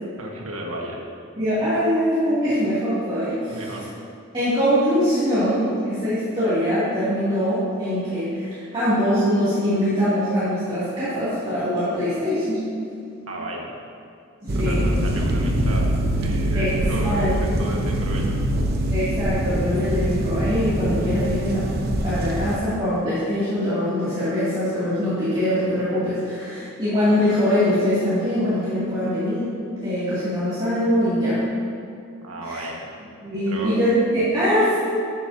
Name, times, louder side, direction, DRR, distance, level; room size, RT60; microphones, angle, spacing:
voice 1, 0.2-1.0 3.4-3.8 13.3-13.7 14.5-18.4 32.2-32.9 33.5-33.7, right 1 dB, 85° right, -1 dB, 1.6 m, -33 dB
voice 2, 1.4-3.6 4.3-12.6 14.4-14.8 16.5-16.7 17.0-17.3 18.9-21.6 22.0-29.5 29.8-31.4 32.4-32.6 33.2-34.8, equal, 25° right, -15 dB, 2.6 m, -22 dB
sound 1, 14.5-22.6, right 1 dB, 45° right, 0.8 m, -23 dB
13.0 x 8.6 x 2.8 m, 2.4 s
head